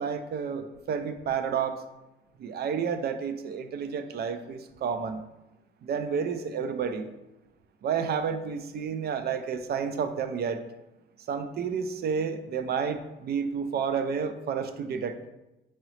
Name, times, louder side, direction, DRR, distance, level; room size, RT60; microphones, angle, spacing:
voice 1, 0.0-1.8 2.4-5.2 5.8-7.1 7.8-10.6 11.3-15.2, right 6 dB, 55° right, 9 dB, 0.4 m, -30 dB
3.7 x 3.0 x 3.1 m, 0.96 s
cardioid pair, 90°, 20 cm